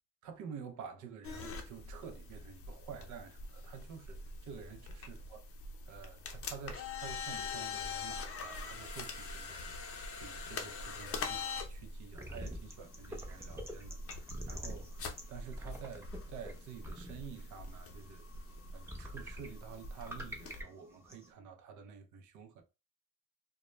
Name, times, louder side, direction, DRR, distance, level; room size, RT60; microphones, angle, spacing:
voice 1, 0.2-5.4 5.9-18.3 18.7-22.6, right 7 dB, 75° right, 0.6 m, -50 dB
sound 1, 1.2-20.6, left 4 dB, 50° left, 0.6 m, -44 dB
sound 2, 12.1-21.3, equal, 10° right, 0.6 m, -48 dB
2.1 x 2.1 x 2.9 m
cardioid pair, 90°, 30 cm